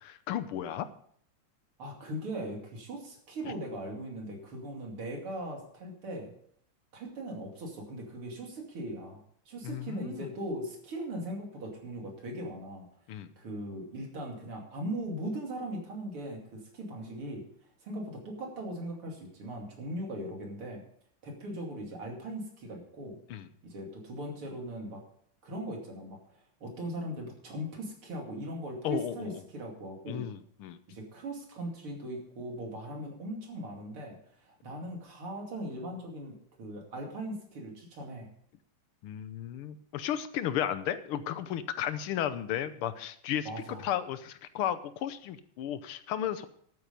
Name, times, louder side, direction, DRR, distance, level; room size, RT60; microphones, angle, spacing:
voice 1, 0.0-0.9 9.6-10.3 13.1-13.3 23.3-23.5 28.8-29.3 30.1-30.8 39.0-43.5 43.8-46.5, left 10 dB, 85° left, 13 dB, 1.7 m, -34 dB
voice 2, 1.8-6.3 6.9-9.2 9.5-12.9 13.4-17.4 17.8-20.8 21.2-23.2 23.6-25.0 25.4-30.3 30.9-38.3 43.5-44.0, right 1 dB, 80° right, 1 dB, 3.5 m, -39 dB
12.0 x 9.2 x 5.3 m, 0.63 s
omnidirectional pair, 2.4 m